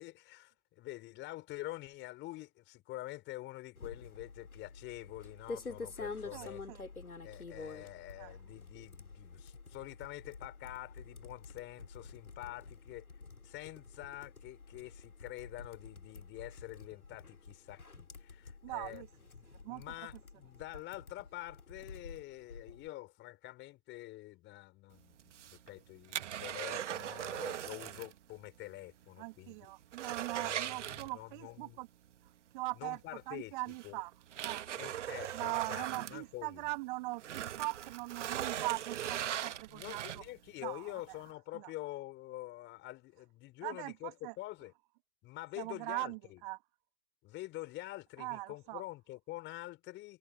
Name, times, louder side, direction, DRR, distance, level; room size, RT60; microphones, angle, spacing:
voice 1, 0.0-6.6 7.2-13.0 13.4-19.0 19.4-25.4 25.7-29.6 30.3-31.8 32.8-34.0 34.8-36.7 39.7-44.7 45.2-46.4 47.2-50.2, left 17 dB, 25° left, 5.7 m, -47 dB
sound 1, 3.8-22.9, left 4 dB, 85° left, 3.8 m, -49 dB
voice 2, 6.3-6.8 8.2-8.3 18.6-19.1 19.6-19.8 29.2-31.9 32.5-33.0 33.3-34.1 34.4-34.6 35.3-40.2 40.6-41.2 41.5-41.7 43.6-44.3 45.6-46.6 48.2-48.8, right 23 dB, 35° right, 2.4 m, -41 dB
sound 2, 25.2-28.2 28.5-28.6 29.0-29.1 29.5-31.5 32.9-33.0 33.7-36.8 37.1-40.5 41.0-41.1, right 10 dB, 55° right, 1.6 m, -40 dB
figure-of-eight pair, 120°, 42 cm